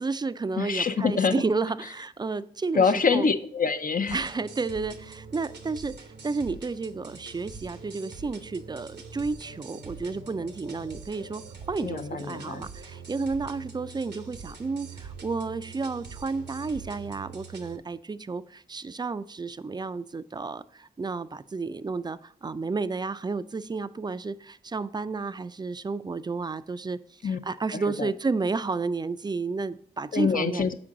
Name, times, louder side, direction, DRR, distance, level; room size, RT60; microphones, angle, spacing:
voice 1, 0.0-3.3 4.1-4.9 5.3-5.9 6.2-8.9 9.1-11.4 11.7-12.7 13.1-14.9 15.2-18.4 18.7-20.6 21.0-21.3 21.5-22.2 22.4-24.3 24.7-27.0 27.5-30.6, right 4 dB, 25° right, 14 dB, 0.3 m, -31 dB
voice 2, 0.6-1.3 2.8-4.2 11.8-12.7 27.2-27.4 28.0-28.1 30.1-30.7, left 5 dB, 55° left, 9 dB, 0.6 m, -25 dB
sound 1, 4.1-17.8, right 5 dB, 85° right, 0.8 m, -44 dB
6.0 x 4.5 x 3.8 m, 0.62 s
cardioid pair, 40°, 17 cm